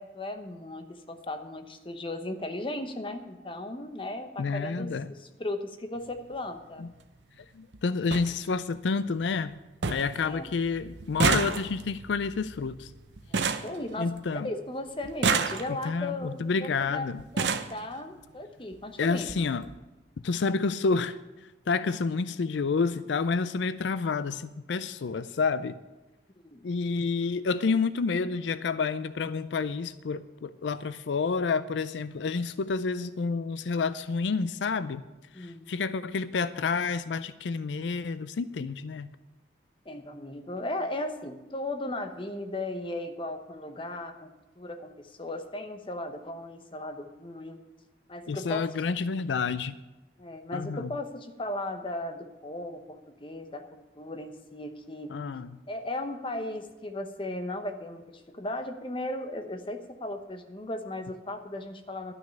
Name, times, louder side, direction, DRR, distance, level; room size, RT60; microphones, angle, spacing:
voice 1, 0.0-6.9 10.2-10.5 13.3-17.1 17.3-19.5 26.4-26.6 35.3-35.7 39.8-44.3 44.6-47.6 48.1-48.7 50.2-53.6 54.0-55.1 55.7-62.1, left 1 dB, 30° left, 7 dB, 0.9 m, -36 dB
voice 2, 4.4-5.1 6.8-6.9 7.5-9.5 9.9-12.9 14.0-14.5 15.8-17.2 19.0-19.6 20.2-21.2 21.7-25.8 26.6-35.0 35.4-39.1 48.3-49.8 50.5-50.9 55.1-55.6, left 4 dB, 90° left, 15 dB, 0.4 m, -29 dB
sound 1, 6.0-6.2 7.4-7.5 7.7-7.8 8.1-8.3 8.8-9.2 9.5-9.6 9.8-10.2 10.5-14.5 15.0-16.0 16.8-16.9 17.2-17.8 18.7-18.8 19.2-19.4 19.6-19.7, right 5 dB, 80° right, 0.7 m, -29 dB
12.0 x 6.4 x 8.6 m, 1.1 s
head